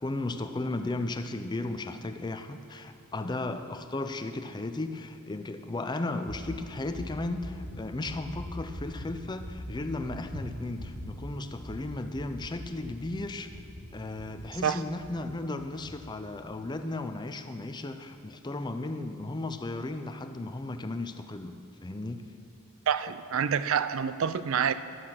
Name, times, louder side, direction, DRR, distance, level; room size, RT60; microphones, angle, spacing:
voice 1, 0.0-13.5 13.9-21.6 21.8-22.2, left 2 dB, 20° left, 8 dB, 0.5 m, -35 dB
sound 1, 6.2-15.2 15.6-15.9 16.3-16.6, equal, 85° right, 2.0 m, -42 dB
voice 2, 22.9-24.7, right 7 dB, 60° right, 13 dB, 0.4 m, -27 dB
12.5 x 8.7 x 5.9 m, 2.5 s
head